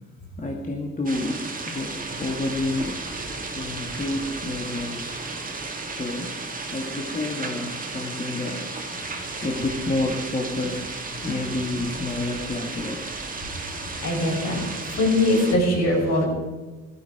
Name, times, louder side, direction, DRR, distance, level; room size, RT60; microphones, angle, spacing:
voice 1, 0.4-3.0 3.5-5.2 6.0-6.4 6.7-8.7 9.4-10.9 11.2-13.1, left 2 dB, 25° left, 0 dB, 2.1 m, -29 dB
sound 1, 1.1-15.6, right 3 dB, 30° right, 2.0 m, -34 dB
voice 2, 9.0-9.4 11.2-11.3 13.4-16.3, left 1 dB, 65° left, -1 dB, 5.8 m, -23 dB
15.5 x 12.5 x 5.0 m, 1.2 s
cardioid pair, 90°, 30 cm